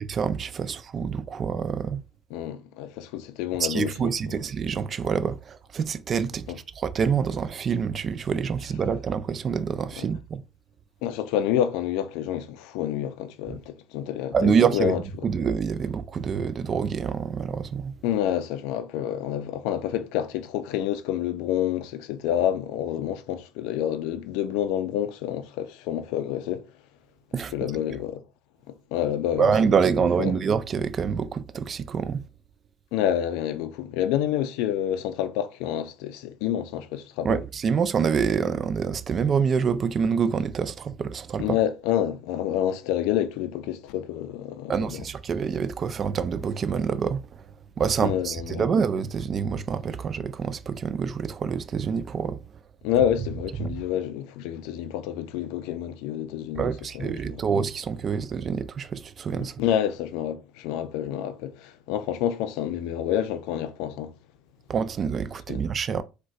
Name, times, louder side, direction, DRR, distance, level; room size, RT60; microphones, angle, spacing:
voice 1, 0.0-2.0 3.6-6.5 6.8-10.4 14.3-14.9 15.2-17.9 27.3-27.5 29.4-32.2 37.2-41.6 44.7-47.2 47.8-52.4 53.6-53.7 56.6-59.6 64.7-66.0, right 6 dB, 40° right, 0.3 m, -26 dB
voice 2, 2.3-4.1 6.5-6.6 10.0-10.1 11.0-15.3 18.0-26.7 27.3-28.2 28.7-29.5 30.0-30.3 32.9-37.4 41.4-45.1 48.0-48.7 52.8-57.4 59.4-64.1 65.5-65.6, left 10 dB, 80° left, 0.3 m, -28 dB
3.7 x 2.2 x 2.4 m
supercardioid pair, 90°, 0 cm